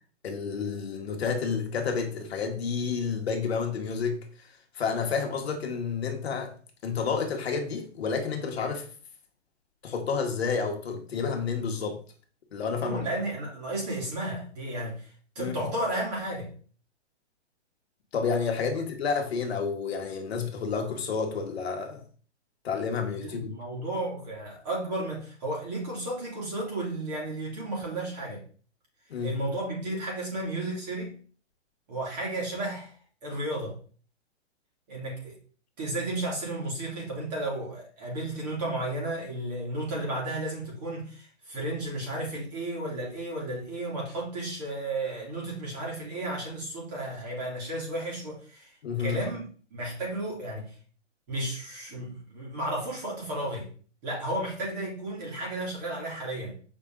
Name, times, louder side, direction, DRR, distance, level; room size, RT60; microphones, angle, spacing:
voice 1, 0.2-4.5 4.7-6.5 6.8-8.9 9.8-12.0 12.5-13.0 15.4-15.7 18.1-22.0 22.6-23.5 29.1-29.4 48.8-49.2, left 5 dB, 60° left, 1.6 m, -30 dB
voice 2, 12.8-15.1 15.3-16.5 23.2-28.4 29.2-31.2 31.9-32.9 33.2-33.8 34.9-35.4 35.8-48.7 49.0-49.4 49.7-50.7 51.3-53.7 54.0-56.6, right 1 dB, 35° right, 3.2 m, -33 dB
7.3 x 4.9 x 3.9 m
hypercardioid pair, 165°, 36 cm